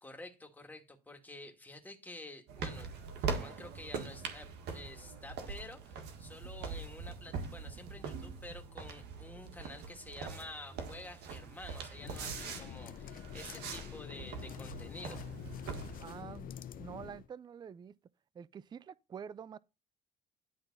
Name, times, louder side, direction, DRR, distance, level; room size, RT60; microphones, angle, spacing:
voice 1, 0.0-3.0 3.2-15.2, left 2 dB, 10° left, 2.1 m, -50 dB
sound 1, 2.5-16.2, right 5 dB, 80° right, 1.7 m, -42 dB
sound 2, 11.9-17.3, left 9 dB, 55° left, 0.6 m, -46 dB
voice 2, 16.0-18.0 18.4-19.6, right 7 dB, 25° right, 0.4 m, -47 dB
11.0 x 3.8 x 5.5 m
cardioid pair, 110°, 17 cm